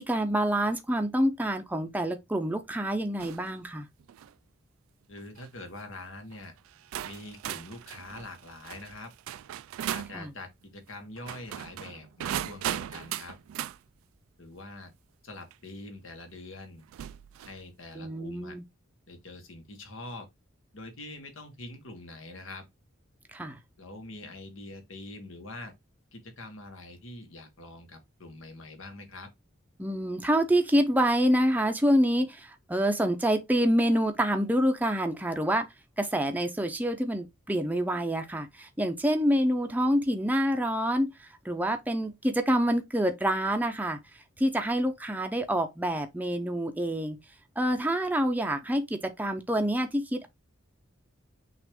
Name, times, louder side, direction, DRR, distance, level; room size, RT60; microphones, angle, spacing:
voice 1, 0.0-3.9 10.1-10.3 18.0-18.6 23.3-23.6 29.8-35.7 36.0-44.0 44.4-47.2 47.6-50.3, equal, 10° right, 0.6 m, -27 dB
sound 1, 3.2-3.5 4.0-4.3 5.2-5.5 6.3-6.4 6.9-10.2 11.2-13.8 15.5-15.6 16.9-17.6, right 11 dB, 90° right, 0.3 m, -37 dB
voice 2, 5.1-6.5 7.0-9.1 9.9-13.4 14.4-14.9 15.2-16.8 17.4-18.6 19.1-20.3 20.7-22.6 23.8-25.7 26.1-29.3, left 2 dB, 75° left, 1.3 m, -44 dB
6.0 x 2.5 x 3.5 m
head